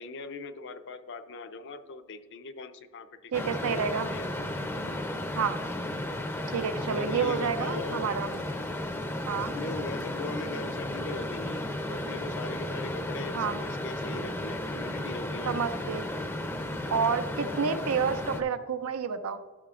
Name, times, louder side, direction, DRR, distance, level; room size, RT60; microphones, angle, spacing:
voice 1, 0.0-3.3 3.7-4.3 4.8-5.0 6.9-8.1 9.5-15.7, left 3 dB, 55° left, 9 dB, 0.5 m, -40 dB
sound 1, 3.3-18.4, left 1 dB, 10° left, 0.5 m, -34 dB
voice 2, 3.3-4.1 5.4-5.6 6.5-8.3 9.3-9.6 13.3-13.6 15.5-16.1 16.9-19.4, right 6 dB, 90° right, 10 dB, 0.5 m, -29 dB
12.5 x 6.7 x 2.4 m, 1.4 s
head